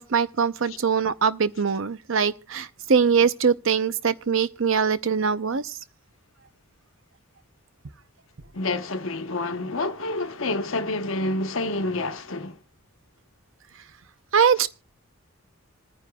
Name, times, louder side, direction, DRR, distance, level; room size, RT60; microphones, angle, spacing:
voice 1, 0.0-5.6 14.3-14.7, right 6 dB, 65° right, 0.6 m, -22 dB
voice 2, 8.5-12.5 14.6-14.7, left 2 dB, 65° left, 1.0 m, -28 dB
26.5 x 9.7 x 2.3 m
head